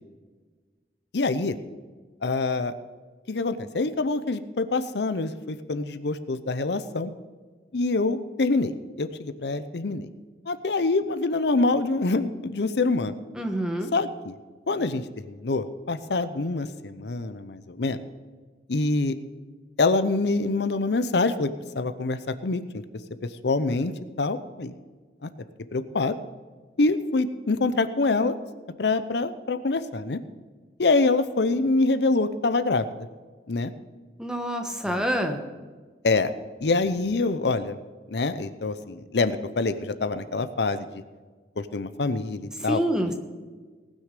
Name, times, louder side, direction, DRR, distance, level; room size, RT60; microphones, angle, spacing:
voice 1, 1.1-1.6 2.2-2.7 3.3-7.1 7.7-8.7 9.0-10.1 10.5-13.1 13.9-14.3 14.7-18.0 18.7-19.2 19.8-22.8 23.4-24.7 25.2-25.3 25.7-26.1 26.8-28.3 28.8-30.2 30.8-32.9 33.5-33.7 34.8-35.0 36.0-36.3 36.6-37.8 38.1-41.0 41.6-42.8, left 3 dB, 75° left, 11 dB, 0.7 m, -25 dB
voice 2, 13.4-13.9 34.2-35.4 42.7-43.1, equal, 5° right, 4 dB, 1.2 m, -26 dB
19.0 x 6.4 x 6.7 m, 1.4 s
head